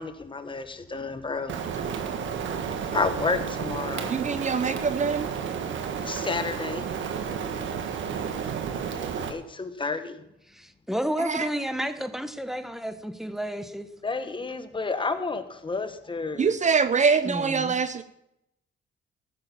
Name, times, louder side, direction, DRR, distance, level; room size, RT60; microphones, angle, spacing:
voice 1, 0.0-1.6 2.9-4.2 6.0-6.8 9.3-10.2 14.0-16.6, left 4 dB, 25° left, 10 dB, 1.3 m, -30 dB
Rain, 1.5-9.3, right 7 dB, 75° right, 1.5 m, -31 dB
voice 2, 4.0-5.3 11.2-11.5 16.4-18.0, right 5 dB, 35° right, 14 dB, 0.7 m, -24 dB
voice 3, 10.5-13.9 17.2-17.8, equal, ahead, 10 dB, 1.2 m, -31 dB
15.0 x 6.9 x 7.0 m, 0.82 s
cardioid pair, 90°, 20 cm